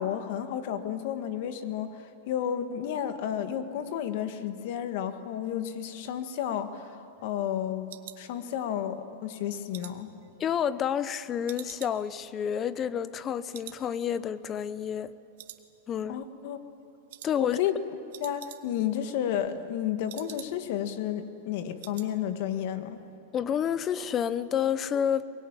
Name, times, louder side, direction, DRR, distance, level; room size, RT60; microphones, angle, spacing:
voice 1, 0.0-10.1 16.1-16.6 17.4-17.7 18.2-23.0, left 10 dB, 60° left, 9 dB, 1.8 m, -32 dB
sound 1, 6.2-8.9 9.3-11.1 11.5-13.3 13.5-13.9 14.1-14.2 14.7-15.1 15.4-16.2 16.4-16.7 17.1-17.4 17.7-17.8 18.0-18.9 19.2-20.8 21.1-21.2 21.5-22.1 22.4-22.7 23.0-23.1, right 14 dB, 65° right, 1.4 m, -48 dB
voice 2, 10.4-15.1 15.9-16.2 17.2-17.6 23.3-25.2, left 8 dB, 25° left, 16 dB, 0.8 m, -29 dB
23.0 x 22.0 x 9.0 m, 2.8 s
hypercardioid pair, 135°, 0 cm